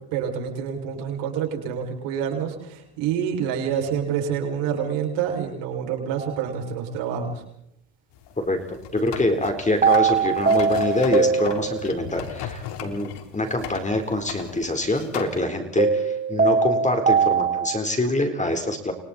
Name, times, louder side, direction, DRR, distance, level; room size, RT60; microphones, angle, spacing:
voice 1, 0.1-7.4, right 8 dB, 75° right, 1 dB, 6.5 m, -27 dB
sound 1, 6.2-6.3 9.8-12.2 15.8-17.8, right 5 dB, 20° right, 1.1 m, -21 dB
sound 2, 8.1-15.4, left 9 dB, 65° left, 3.9 m, -37 dB
voice 2, 8.4-18.9, left 1 dB, 15° left, 5 dB, 4.1 m, -25 dB
29.5 x 26.5 x 4.3 m, 0.77 s
supercardioid pair, 95°, 44 cm